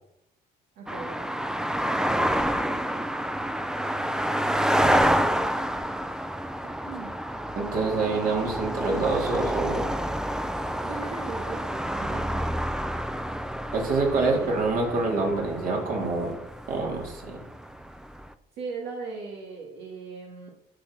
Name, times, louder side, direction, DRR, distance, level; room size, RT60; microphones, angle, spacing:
voice 1, 0.8-1.2 6.6-7.2 10.8-12.5 14.2-14.6 18.6-20.5, right 4 dB, 85° right, 0 dB, 2.3 m, -38 dB
sound 1, 0.9-18.3, equal, 5° right, 0.6 m, -28 dB
voice 2, 7.6-9.9 13.7-16.4 16.7-17.4, right 3 dB, 55° right, 0 dB, 3.6 m, -26 dB
12.5 x 5.9 x 6.4 m, 0.81 s
cardioid pair, 110°, 17 cm